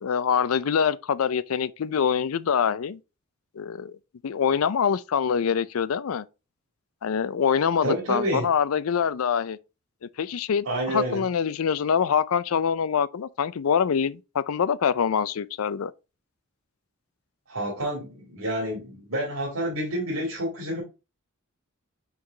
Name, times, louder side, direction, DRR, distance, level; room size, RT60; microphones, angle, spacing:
voice 1, 0.0-3.0 3.6-4.0 4.2-6.2 7.0-9.6 10.2-15.9, left 7 dB, 80° left, 0.4 m, -25 dB
voice 2, 7.8-8.5 10.6-11.2 17.5-20.8, right 1 dB, 75° right, 2.2 m, -29 dB
5.8 x 4.8 x 3.8 m
head